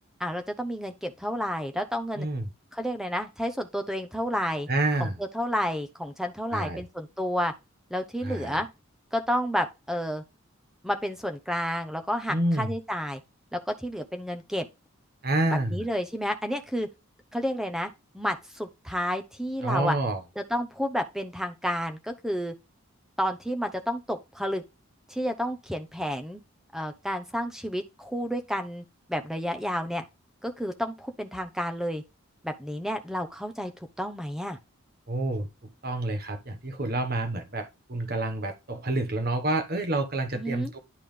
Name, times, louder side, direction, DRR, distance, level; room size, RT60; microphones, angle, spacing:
voice 1, 0.2-2.3 2.7-4.7 5.0-5.1 5.3-7.5 7.9-8.7 9.1-10.2 10.8-13.2 13.5-14.7 15.5-16.9 17.3-17.9 18.1-20.0 20.4-22.5 23.2-24.6 25.1-26.4 26.7-28.8 29.1-30.0 30.4-32.0 32.4-34.6 40.3-40.7, equal, ahead, 0.8 m, -30 dB
voice 2, 2.2-2.5 4.7-5.1 6.5-6.8 8.2-8.6 12.3-12.7 15.2-15.8 19.6-20.2 35.1-40.8, right 2 dB, 45° right, 1.2 m, -28 dB
11.0 x 3.7 x 3.3 m
head